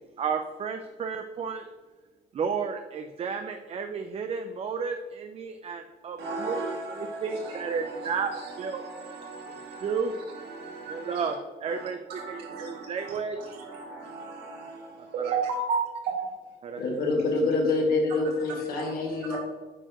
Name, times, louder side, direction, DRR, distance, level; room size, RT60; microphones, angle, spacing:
voice 1, 0.2-1.7 2.3-6.6 6.9-8.8 9.8-10.1 10.9-11.4 11.6-13.6 15.2-15.4 16.6-16.8, right 5 dB, 35° right, 6 dB, 0.5 m, -32 dB
voice 2, 6.2-11.3 11.6-11.9 12.2-16.3 18.8-18.9 19.2-19.4, right 4 dB, 80° right, -1 dB, 2.1 m, -35 dB
voice 3, 16.8-19.4, left 3 dB, 65° left, -1 dB, 2.1 m, -26 dB
8.9 x 4.5 x 3.0 m, 1.3 s
cardioid pair, 110°, 17 cm